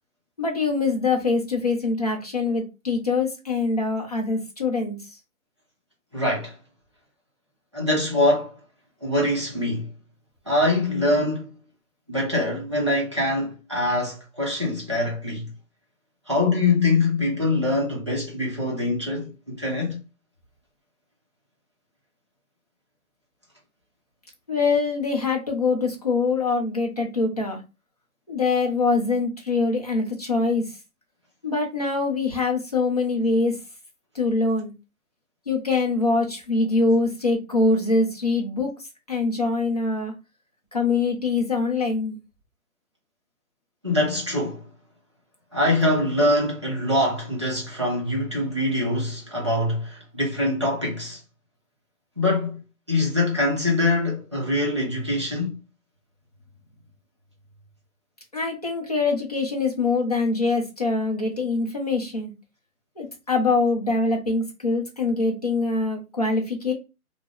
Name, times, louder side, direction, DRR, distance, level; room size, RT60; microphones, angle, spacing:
voice 1, 0.4-5.0 24.5-27.6 28.3-30.6 31.4-33.5 34.1-34.7 35.5-38.7 39.1-40.1 40.7-42.2 58.3-62.3 63.0-66.7, left 3 dB, 25° left, 0.6 m, -24 dB
voice 2, 6.1-6.5 7.7-8.6 9.0-9.9 10.5-11.5 12.1-15.5 16.3-20.0 43.8-44.6 45.5-51.2 52.2-55.6, left 2 dB, 20° right, 0.6 m, -24 dB
2.8 x 2.0 x 3.7 m
hypercardioid pair, 165°, 45 cm